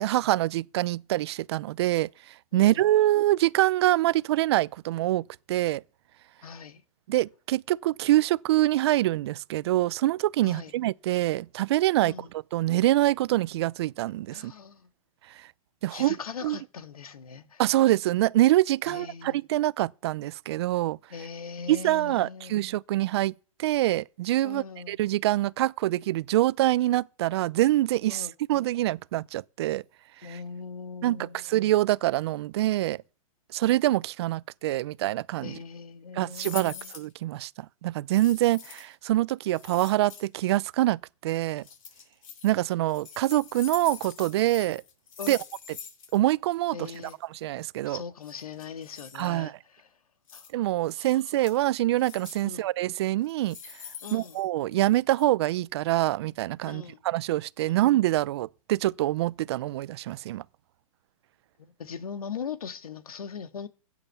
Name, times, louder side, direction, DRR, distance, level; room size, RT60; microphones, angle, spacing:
voice 1, 0.0-2.1 2.5-5.8 7.1-12.1 12.5-14.5 15.8-16.2 16.4-16.6 17.6-21.0 21.7-23.3 23.6-29.8 30.2-30.4 31.0-33.0 33.5-35.5 36.2-37.5 37.8-41.6 42.4-44.8 45.3-45.4 46.1-46.9 47.4-48.0 49.1-49.6 50.5-53.6 54.1-60.4, right 15 dB, 45° right, 0.6 m, -25 dB
voice 2, 2.5-2.9 6.4-6.8 10.4-10.7 12.0-12.3 14.3-14.9 15.9-17.6 18.9-19.4 21.1-22.5 24.4-25.0 28.1-28.3 30.2-31.5 35.4-36.9 45.2-45.4 46.7-47.2 47.8-49.9 50.3-50.4 51.0-51.1 52.4-52.6 54.0-54.4 56.6-57.0 57.7-57.8 61.6-63.7, left 6 dB, 85° left, 2.0 m, -40 dB
sound 1, 36.3-37.1 38.1-38.9 39.5-40.5 41.6-42.5 42.9-46.2 46.4-46.5 46.8-47.1 48.2-49.3 50.3-50.5 50.8-51.6 52.0-52.5 53.2-54.9 55.2-55.3, left 8 dB, 70° left, 7.0 m, -44 dB
16.0 x 7.9 x 7.0 m
hypercardioid pair, 145°, 18 cm